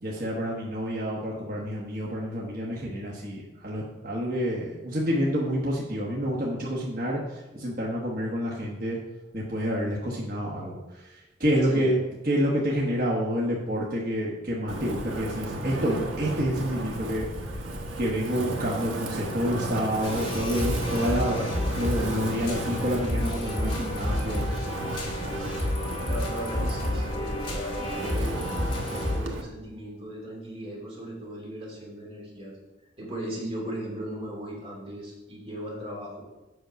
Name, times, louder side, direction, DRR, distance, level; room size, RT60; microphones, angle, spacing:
voice 1, 0.0-9.0 9.3-10.8 11.0-11.1 11.4-12.0 12.3-17.3 18.0-21.5 21.8-24.4, equal, 45° right, -3 dB, 1.2 m, -28 dB
Wind, 14.7-29.4, right 1 dB, 90° right, 1.2 m, -34 dB
sound 1, 20.0-29.2, left 1 dB, 25° left, 1.7 m, -31 dB
voice 2, 26.0-28.4 28.8-32.6 33.0-36.2, equal, 30° right, -3 dB, 2.9 m, -37 dB
8.1 x 6.2 x 5.1 m, 1.1 s
head